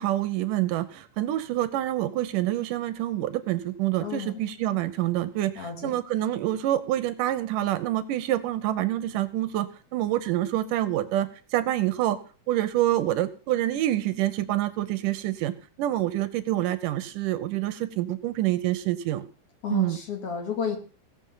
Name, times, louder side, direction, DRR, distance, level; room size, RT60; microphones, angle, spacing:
voice 1, 0.0-12.2 12.5-19.3 19.7-20.0, right 14 dB, 75° right, 12 dB, 2.1 m, -27 dB
voice 2, 4.0-4.3 5.6-5.9 19.6-20.8, left 7 dB, 45° left, 4 dB, 2.7 m, -32 dB
16.5 x 7.2 x 5.5 m, 0.37 s
omnidirectional pair, 4.3 m